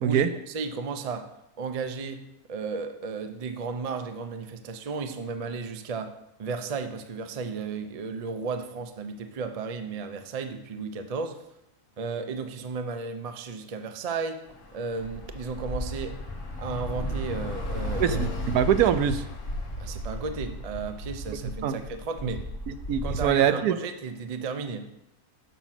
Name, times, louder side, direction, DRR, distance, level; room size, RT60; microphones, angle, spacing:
voice 1, 0.0-1.3 1.6-6.1 6.4-11.4 12.0-14.4 14.7-16.2 16.6-18.2 19.8-22.5 23.0-24.9, right 4 dB, 50° right, 7 dB, 0.4 m, -34 dB
Bus / Traffic noise roadway noise, 14.5-23.3, left 1 dB, 55° left, 1.7 m, -34 dB
voice 2, 18.0-19.2 21.6-21.8 22.7-23.8, right 9 dB, 80° right, 11 dB, 1.1 m, -23 dB
7.1 x 6.0 x 5.8 m, 0.84 s
omnidirectional pair, 1.6 m